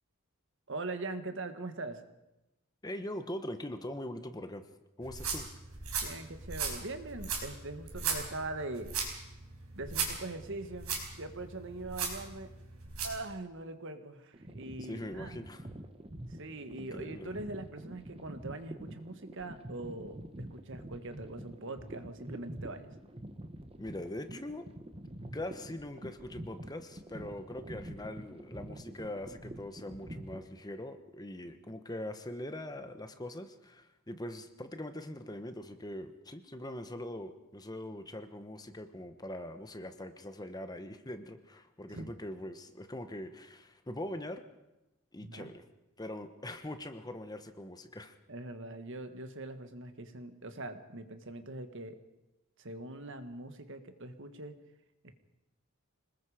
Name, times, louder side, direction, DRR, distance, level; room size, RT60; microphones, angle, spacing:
voice 1, 0.7-2.0 6.0-8.9 9.7-12.5 13.0-15.4 16.3-22.9 41.9-42.1 45.2-45.5 48.3-52.0 52.6-54.6 55.0-55.1, right 2 dB, 55° right, 8 dB, 1.7 m, -42 dB
voice 2, 2.8-4.6 5.0-5.5 14.8-15.7 16.7-17.4 23.8-24.7 25.3-44.4 45.1-45.6 46.0-48.2, left 1 dB, 15° left, 8 dB, 1.1 m, -42 dB
sound 1, 5.0-13.2, right 5 dB, 75° right, 5.2 m, -38 dB
sound 2, 14.3-30.4, right 1 dB, 25° right, 1.3 m, -46 dB
26.0 x 20.0 x 5.1 m, 0.95 s
head